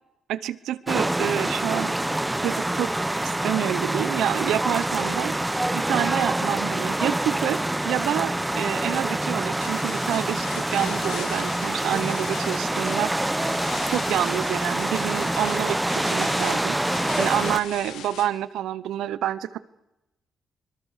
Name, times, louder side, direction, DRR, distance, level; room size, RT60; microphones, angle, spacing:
voice 1, 0.3-1.9 2.4-2.9 3.4-5.3 5.7-13.2 13.9-15.8 16.0-16.9 17.2-19.6, right 12 dB, 85° right, 18 dB, 1.0 m, -28 dB
sound 1, 0.9-17.6, right 1 dB, 10° right, 0.9 m, -26 dB
sound 2, 2.3-14.0, left 1 dB, 10° left, 2.7 m, -46 dB
sound 3, 9.6-18.3, left 8 dB, 90° left, 2.9 m, -39 dB
24.5 x 22.5 x 6.8 m, 0.95 s
cardioid pair, 70°, 0 cm